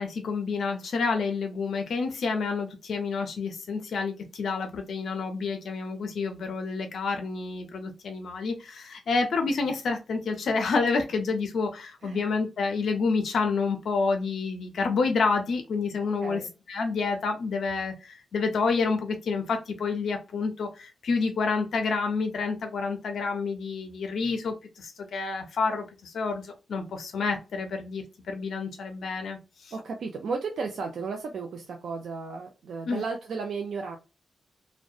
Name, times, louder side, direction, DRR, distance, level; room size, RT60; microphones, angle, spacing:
voice 1, 0.0-16.4 16.7-29.7 32.9-33.0, left 4 dB, 65° left, 4 dB, 0.4 m, -29 dB
voice 2, 16.2-16.5 29.7-34.0, right 4 dB, 65° right, 2 dB, 0.4 m, -34 dB
2.6 x 2.1 x 2.3 m, 0.29 s
wide cardioid pair, 165°, 0 cm